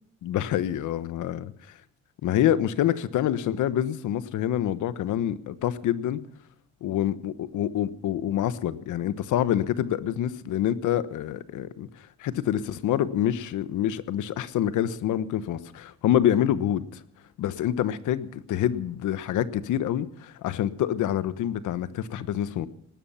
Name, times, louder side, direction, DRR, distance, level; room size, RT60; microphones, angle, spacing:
voice 1, 0.2-1.5 2.2-6.2 6.8-11.9 12.2-17.0 17.4-22.7, left 11 dB, 80° left, 14 dB, 1.2 m, -26 dB
18.5 x 13.5 x 5.7 m, 0.70 s
cardioid pair, 90°, 30 cm